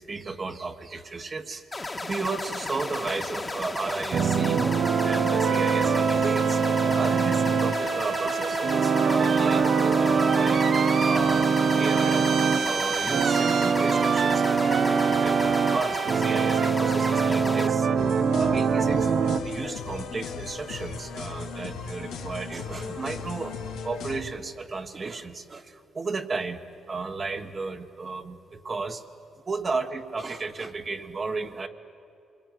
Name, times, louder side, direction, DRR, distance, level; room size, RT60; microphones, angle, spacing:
voice 1, 0.0-4.7 5.0-10.7 11.0-12.3 12.6-17.9 18.4-19.1 19.4-23.6 23.8-26.6 26.9-29.0 29.5-31.7, right 4 dB, 35° right, 6 dB, 1.4 m, -34 dB
sound 1, 1.7-17.7, left 2 dB, 20° left, 1.8 m, -34 dB
sound 2, 4.1-19.4, right 5 dB, 50° right, 1.1 m, -23 dB
sound 3, 18.0-24.2, left 5 dB, 90° left, 2.3 m, -37 dB
26.5 x 21.0 x 9.5 m, 2.7 s
cardioid pair, 90°, 0 cm